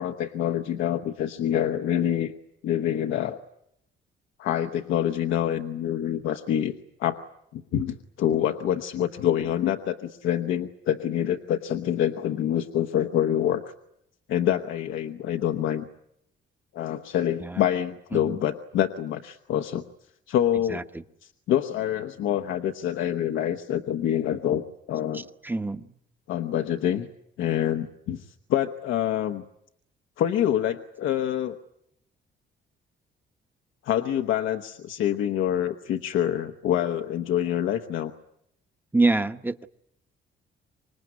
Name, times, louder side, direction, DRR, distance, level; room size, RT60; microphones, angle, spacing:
voice 1, 0.0-2.3 2.6-3.4 4.4-6.7 7.0-7.2 7.5-13.6 14.3-15.9 16.7-19.8 20.3-20.8 21.2-25.2 26.3-27.1 27.4-28.2 28.5-29.4 30.2-31.6 33.8-38.1, left 10 dB, 85° left, 5 dB, 1.1 m, -26 dB
voice 2, 25.4-25.9 38.9-39.7, right 3 dB, 10° right, 10 dB, 1.0 m, -25 dB
26.0 x 20.0 x 9.6 m, 0.78 s
cardioid pair, 90°, 20 cm